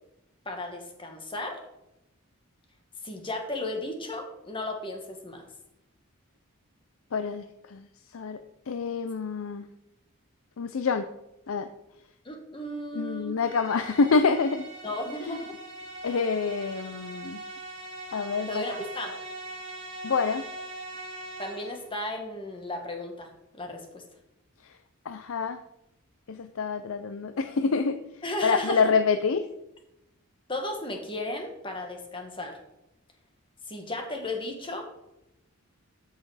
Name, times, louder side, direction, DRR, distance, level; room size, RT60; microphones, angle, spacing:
voice 1, 0.4-1.6 3.0-5.5 12.2-13.4 14.8-15.4 18.5-19.1 21.4-23.3 23.6-24.0 28.2-28.8 30.5-32.6 33.7-35.0, left 1 dB, 25° left, 3 dB, 1.6 m, -35 dB
voice 2, 7.1-7.9 8.1-9.7 10.6-11.1 11.5-11.7 12.9-14.6 15.3-15.4 16.0-17.4 18.1-18.6 20.0-20.4 25.1-25.6 26.3-28.0 28.4-29.5, left 4 dB, 75° left, 10 dB, 0.5 m, -27 dB
sound 1, 13.4-21.9, right 2 dB, 50° right, 3.1 m, -41 dB
12.5 x 5.6 x 4.9 m, 0.90 s
head